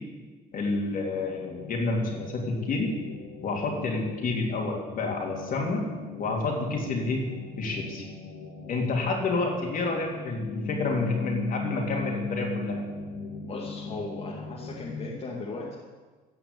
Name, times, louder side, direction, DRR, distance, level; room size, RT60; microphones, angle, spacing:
voice 1, 0.5-2.9 3.4-5.8 6.2-7.2 7.6-8.0 8.7-12.8, left 3 dB, 55° left, 0 dB, 3.4 m, -29 dB
sound 1, 0.9-15.1, left 4 dB, 80° left, 2.4 m, -39 dB
voice 2, 13.4-15.8, left 3 dB, 35° left, -4 dB, 2.4 m, -37 dB
15.5 x 5.8 x 8.9 m, 1.3 s
cardioid pair, 110°, 17 cm